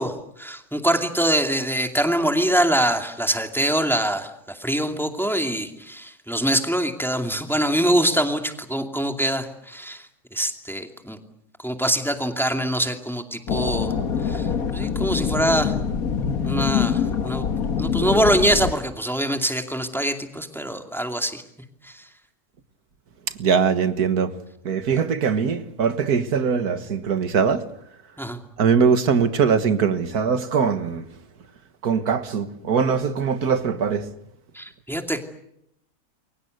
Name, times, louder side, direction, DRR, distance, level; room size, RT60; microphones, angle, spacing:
voice 1, 0.0-11.2 11.6-13.9 14.2-15.7 16.5-17.5 17.8-21.4 21.8-22.1 28.2-28.4 34.5-35.2, right 1 dB, ahead, 2.5 m, -24 dB
sound 1, 13.5-18.7, left 7 dB, 70° left, 2.0 m, -24 dB
voice 2, 23.4-24.4 24.6-27.7 28.6-31.1 31.8-34.1, right 6 dB, 85° right, 2.0 m, -21 dB
29.0 x 23.0 x 7.9 m
omnidirectional pair, 1.6 m